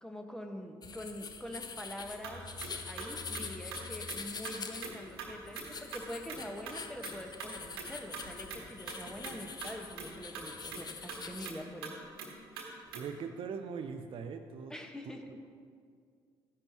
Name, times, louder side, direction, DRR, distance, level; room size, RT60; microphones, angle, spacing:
voice 1, 0.0-2.6 2.8-11.9 14.7-15.4, left 1 dB, 5° left, 3 dB, 1.4 m, -45 dB
sound 1, 0.8-11.5, left 5 dB, 35° left, 0.8 m, -45 dB
sound 2, 2.2-4.9 5.2-5.3 5.5-5.7 5.9-6.0 6.3-6.4 6.7-6.8 7.0-7.5 7.8-8.2 8.5-8.6 8.9-9.0 9.2-9.3 9.6-9.7 10.0-10.1 10.3-10.4 10.7-10.8 11.1-11.2 11.4-11.6 11.8-11.9 12.2-12.3 12.6-12.7 12.9-13.0, right 5 dB, 80° right, 1.4 m, -43 dB
voice 2, 12.9-14.7, right 6 dB, 45° right, 6 dB, 0.6 m, -40 dB
13.5 x 10.5 x 3.0 m, 2.2 s
figure-of-eight pair, 50°, 12 cm